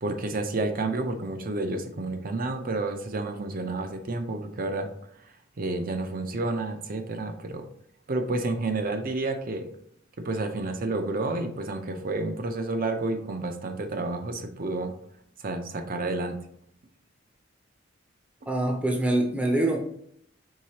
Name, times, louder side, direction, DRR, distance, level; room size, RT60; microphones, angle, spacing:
voice 1, 0.0-4.9 5.2-7.7 8.1-9.7 10.2-14.9 15.4-16.4, right 2 dB, 50° right, 6 dB, 0.6 m, -30 dB
voice 2, 18.5-19.8, right 1 dB, 5° right, 0 dB, 0.6 m, -24 dB
4.8 x 3.8 x 2.8 m, 0.67 s
head